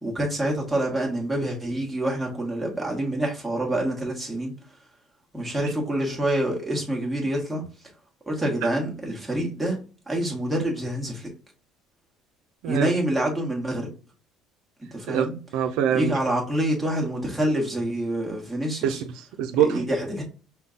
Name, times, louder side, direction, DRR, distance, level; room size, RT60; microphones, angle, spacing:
voice 1, 0.0-4.5 5.3-7.7 8.3-9.8 10.1-11.3 12.6-13.9 14.9-15.4 15.9-19.0 19.6-20.2, right 1 dB, 5° right, 1.3 m, -26 dB
voice 2, 15.1-16.2 18.8-19.9, right 9 dB, 75° right, 0.5 m, -25 dB
5.6 x 2.2 x 3.8 m
cardioid pair, 155°, 0 cm